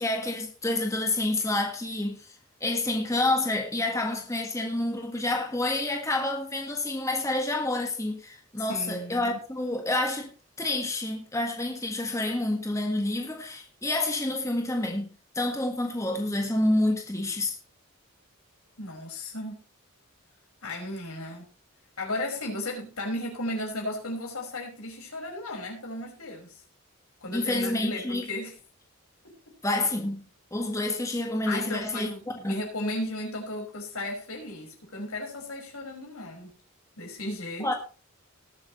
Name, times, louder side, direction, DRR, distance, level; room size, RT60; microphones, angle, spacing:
voice 1, 0.0-10.3 10.6-15.1 15.3-17.6 27.3-28.3 29.6-32.1 32.4-32.5 37.6-37.7, left 2 dB, 15° left, 1.6 m, -28 dB
voice 2, 8.6-9.4 18.8-19.6 20.6-21.5 22.0-26.6 27.2-28.5 29.2-29.5 31.5-36.6 37.0-37.7, left 1 dB, 80° left, 5.7 m, -35 dB
19.0 x 8.8 x 3.2 m
head